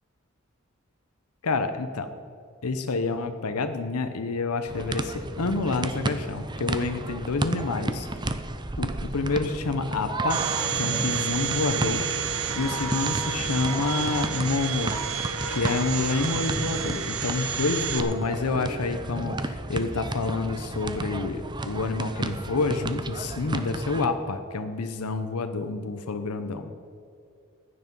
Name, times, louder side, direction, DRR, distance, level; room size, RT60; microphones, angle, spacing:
voice 1, 1.4-2.1 2.6-8.1 8.8-10.4 10.8-12.0 12.5-14.9 15.5-26.7, left 3 dB, 90° left, 8 dB, 0.8 m, -28 dB
sound 1, 4.7-24.1, right 2 dB, 20° right, 0.6 m, -33 dB
Domestic sounds home sounds, 10.3-18.0, right 6 dB, 80° right, 1.2 m, -30 dB
15.5 x 9.9 x 5.4 m, 2.6 s
head